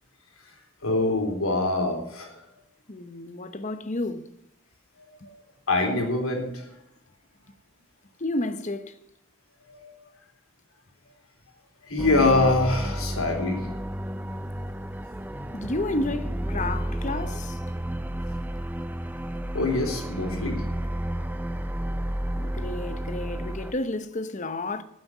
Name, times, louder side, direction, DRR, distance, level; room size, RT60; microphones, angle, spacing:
voice 1, 0.8-2.4 5.2-5.3 5.7-6.7 9.7-9.9 11.8-13.6 19.5-20.7, left 2 dB, 90° left, 3.6 m, -24 dB
voice 2, 2.9-4.3 8.2-8.9 15.5-17.6 22.4-24.8, left 2 dB, 35° left, 0.9 m, -31 dB
sound 1, 12.0-23.7, equal, 10° right, 0.5 m, -31 dB
15.0 x 7.7 x 6.1 m
head